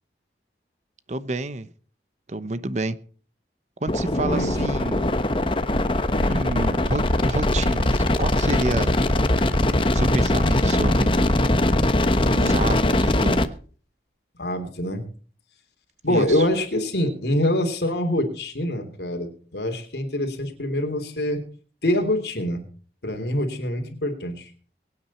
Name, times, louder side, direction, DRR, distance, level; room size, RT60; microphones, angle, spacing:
voice 1, 1.1-1.7 2.3-3.0 3.8-5.1 6.3-8.9 9.9-11.1 12.3-13.4 16.1-16.5, right 2 dB, 40° right, 14 dB, 0.9 m, -29 dB
sound 1, 3.9-13.5, left 1 dB, 30° left, 1.0 m, -21 dB
voice 2, 4.2-4.5 6.1-6.4 12.2-12.6 14.4-15.1 16.0-21.4 21.8-22.6 23.0-24.5, left 1 dB, 70° left, 5 dB, 3.3 m, -25 dB
23.0 x 9.4 x 4.4 m, 0.41 s
head